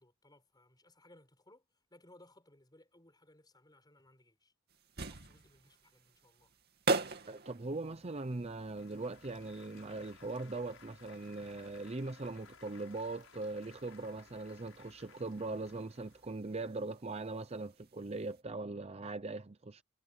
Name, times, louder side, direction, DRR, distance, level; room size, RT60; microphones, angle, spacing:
voice 1, 0.0-4.5 4.9-6.5, left 1 dB, 20° left, 7.3 m, -63 dB
sound 1, 4.7-18.4, right 3 dB, 50° right, 2.6 m, -44 dB
voice 2, 7.3-19.8, right 2 dB, 30° right, 0.7 m, -40 dB
Applause / Crowd, 7.8-16.6, left 6 dB, 70° left, 7.2 m, -60 dB
head